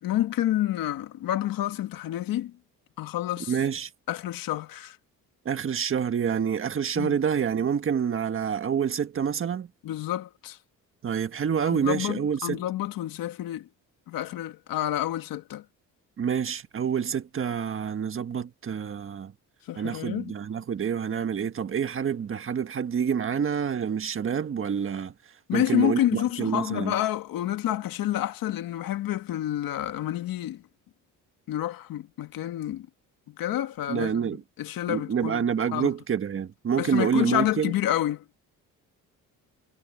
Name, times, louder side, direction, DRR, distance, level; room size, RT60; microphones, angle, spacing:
voice 1, 0.0-2.5 3.0-3.5 4.1-5.0 7.0-7.2 9.8-10.6 11.7-13.7 14.1-15.6 19.7-20.3 25.5-30.6 31.5-32.9 33.4-35.5 35.7-35.9 36.8-38.2, left 13 dB, 80° left, 1.9 m, -29 dB
voice 2, 3.5-3.9 5.4-9.7 11.0-12.6 16.2-19.3 19.7-25.1 25.5-27.0 33.9-34.4 34.9-37.7, right 7 dB, 35° right, 1.6 m, -27 dB
cardioid pair, 150°, 34 cm